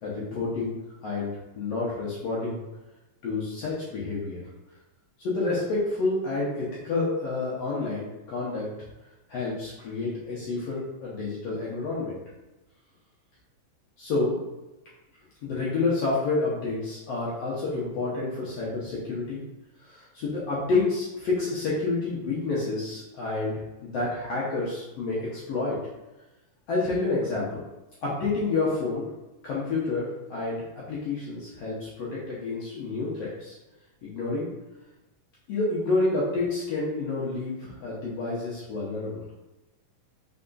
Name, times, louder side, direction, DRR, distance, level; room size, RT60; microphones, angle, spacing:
voice 1, 0.0-0.8 1.0-2.6 3.2-4.4 5.2-8.7 9.3-12.2 14.0-14.4 15.4-19.4 19.8-23.5 23.8-25.8 26.7-27.6 28.0-29.0 29.4-33.6 34.0-34.5 35.5-39.1, left 3 dB, 75° left, -7 dB, 1.5 m, -29 dB
4.7 x 3.8 x 2.3 m, 1.0 s
omnidirectional pair, 3.7 m